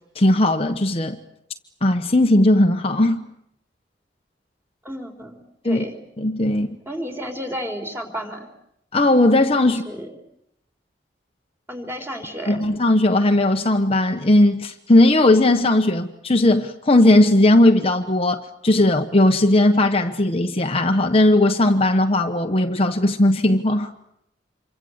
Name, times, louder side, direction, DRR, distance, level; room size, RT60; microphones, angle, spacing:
voice 1, 0.1-1.2 1.8-3.2 5.6-5.8 6.2-6.7 8.9-9.8 12.5-23.9, left 1 dB, 35° left, 1.2 m, -17 dB
voice 2, 4.8-5.4 5.6-6.0 6.9-8.5 9.6-10.1 11.7-12.6, equal, 15° right, 4.2 m, -32 dB
27.5 x 24.5 x 8.1 m
head